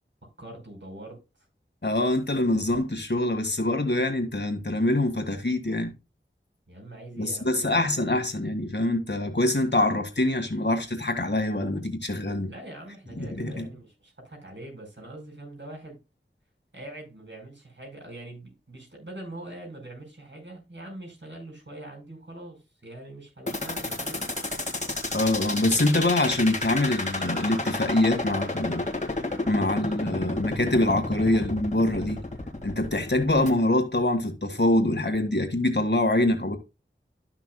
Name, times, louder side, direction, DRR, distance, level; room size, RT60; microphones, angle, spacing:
voice 1, 0.4-1.2 6.7-7.8 12.5-16.0 16.7-24.3, right 1 dB, 60° right, 4.7 m, -43 dB
voice 2, 1.8-5.9 7.2-12.5 13.2-13.6 25.1-28.8 29.5-32.2 32.6-36.6, left 1 dB, 55° left, 1.8 m, -24 dB
sound 1, 23.5-33.5, left 2 dB, 35° left, 1.8 m, -31 dB
12.5 x 5.9 x 2.2 m
wide cardioid pair, 45°, 21 cm